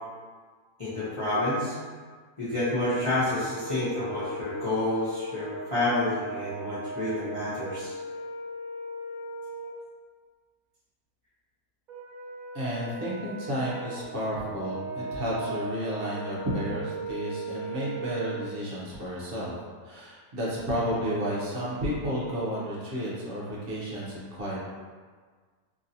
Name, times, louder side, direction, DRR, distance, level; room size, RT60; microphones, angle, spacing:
voice 1, 0.8-1.7 2.4-7.9, left 1 dB, 35° left, -12 dB, 0.5 m, -29 dB
Brass instrument, 3.3-9.8 11.9-18.5, right 2 dB, 90° right, 0.3 m, -38 dB
voice 2, 12.5-19.5 19.8-24.7, equal, 45° right, -7 dB, 0.8 m, -32 dB
3.0 x 2.7 x 2.6 m, 1.5 s
omnidirectional pair, 1.6 m